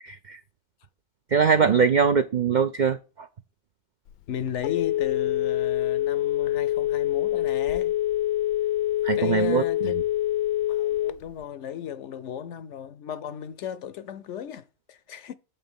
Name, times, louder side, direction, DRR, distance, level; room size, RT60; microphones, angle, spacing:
voice 1, 0.0-0.4 1.3-3.3 9.0-9.9, right 6 dB, 70° right, 0.4 m, -22 dB
Telephone, 4.1-11.4, left 13 dB, 85° left, 1.1 m, -26 dB
voice 2, 4.3-7.9 9.1-10.0 10.7-15.3, left 9 dB, 65° left, 0.8 m, -35 dB
8.6 x 3.9 x 7.0 m
omnidirectional pair, 1.5 m